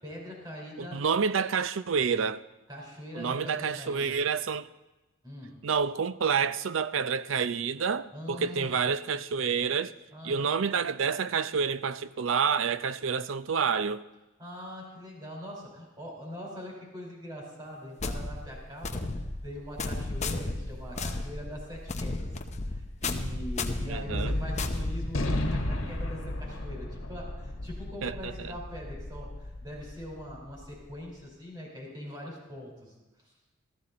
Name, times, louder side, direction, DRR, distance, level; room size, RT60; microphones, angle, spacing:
voice 1, 0.0-1.0 2.7-4.2 5.2-5.5 8.1-8.8 10.1-10.3 14.4-22.3 22.6-32.9, equal, 20° right, 4.6 m, -42 dB
voice 2, 0.8-2.4 3.1-4.7 5.6-9.9 10.2-14.0 23.9-24.4 28.0-28.5, right 6 dB, 75° right, 0.5 m, -28 dB
sound 1, 18.0-25.6, left 2 dB, 35° left, 0.8 m, -34 dB
Gunshot gunfire, 24.1-30.6, left 1 dB, 85° left, 1.5 m, -33 dB
15.0 x 14.0 x 4.2 m
head